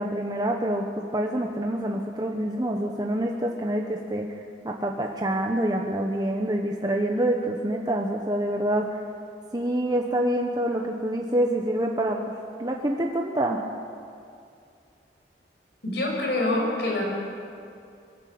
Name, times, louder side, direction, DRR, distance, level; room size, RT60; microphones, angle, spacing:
voice 1, 0.0-4.3 4.6-9.0 9.5-12.2 12.6-13.6, right 1 dB, 25° right, 1 dB, 1.1 m, -26 dB
voice 2, 15.8-17.0, left 2 dB, 70° left, -1 dB, 6.2 m, -25 dB
22.0 x 14.5 x 8.7 m, 2.4 s
head